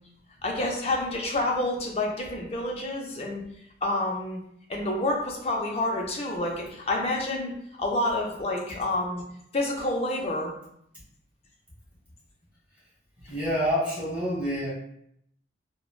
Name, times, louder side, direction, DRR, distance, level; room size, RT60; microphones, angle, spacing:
voice 1, 0.4-3.4 3.8-4.4 4.7-9.2 9.5-10.5, left 1 dB, 35° left, -1 dB, 0.4 m, -28 dB
voice 2, 13.3-14.7, equal, 10° right, -8 dB, 1.1 m, -27 dB
3.0 x 2.1 x 2.3 m, 0.73 s
head